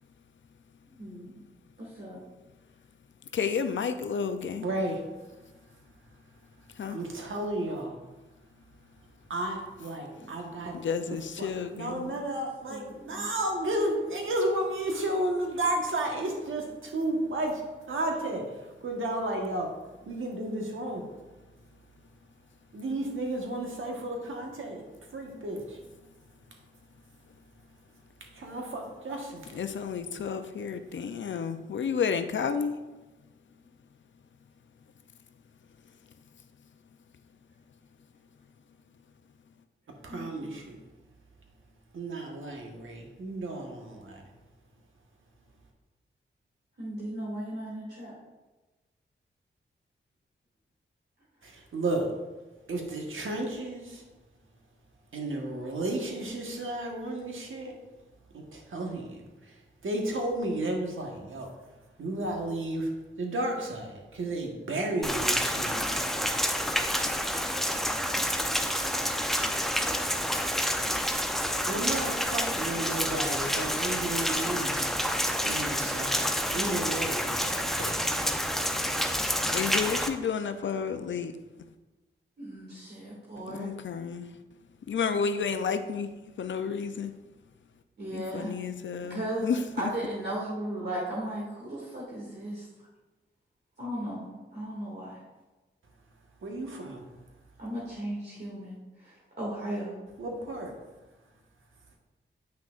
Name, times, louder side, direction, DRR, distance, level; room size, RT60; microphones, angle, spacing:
voice 1, 1.0-1.3 1.8-2.2 10.2-10.3 12.1-12.2 12.7-13.3 40.1-40.5 46.8-48.1 82.4-83.7 88.0-88.6 89.1-89.5 89.8-92.7 93.8-95.2 97.6-100.0, right 1 dB, 50° right, -7 dB, 2.2 m, -36 dB
voice 2, 3.3-4.7 6.8-7.0 10.7-12.2 29.5-32.7 79.5-81.3 83.5-84.3 84.9-86.1 86.4-87.1 88.1-89.9, left 6 dB, 65° left, 9 dB, 0.5 m, -31 dB
voice 3, 4.6-4.9 6.9-7.9 9.3-10.7 11.1-17.5 17.9-18.4 18.8-19.7 20.1-21.0 22.7-24.8 25.1-25.6 28.4-29.4 40.0-40.7 41.9-44.1 51.7-52.0 52.7-53.8 55.1-57.7 58.7-59.0 59.8-61.5 62.0-62.9 63.2-66.0 71.7-74.8 75.4-78.0 96.4-97.0 100.2-100.7, right 1 dB, 70° right, 1 dB, 1.3 m, -32 dB
Rain, 65.0-80.1, equal, ahead, 0.6 m, -28 dB
8.5 x 5.9 x 2.5 m, 1.1 s
cardioid pair, 60°, 21 cm